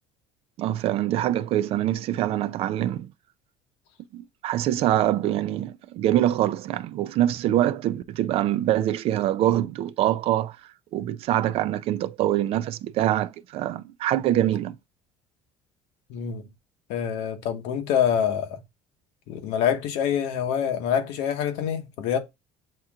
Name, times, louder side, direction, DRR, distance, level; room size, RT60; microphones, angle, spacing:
voice 1, 0.6-3.1 4.1-10.6 10.9-14.8, right 12 dB, 60° right, 0.4 m, -24 dB
voice 2, 16.1-16.4 16.9-18.6 19.3-22.2, left 8 dB, 85° left, 1.1 m, -26 dB
7.7 x 2.9 x 2.4 m
cardioid pair, 120°, 11 cm